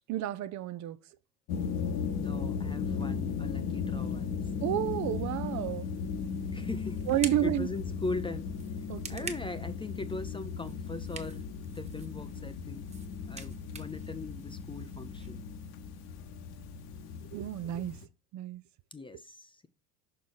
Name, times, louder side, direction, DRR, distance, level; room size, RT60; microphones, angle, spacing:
voice 1, 0.1-1.0 4.6-5.9 7.1-7.7 8.9-9.3 17.3-18.0 18.3-18.6, right 13 dB, 40° right, 0.6 m, -31 dB
sound 1, 1.5-18.0, left 6 dB, 50° left, 1.3 m, -36 dB
voice 2, 2.2-4.4 6.5-8.5 9.1-11.4 11.8-12.9 13.2-15.4 18.9-19.7, left 3 dB, 10° left, 0.6 m, -40 dB
sound 2, 6.0-15.3, right 4 dB, 15° right, 1.3 m, -48 dB
6.2 x 4.5 x 5.5 m
figure-of-eight pair, 70°, 48 cm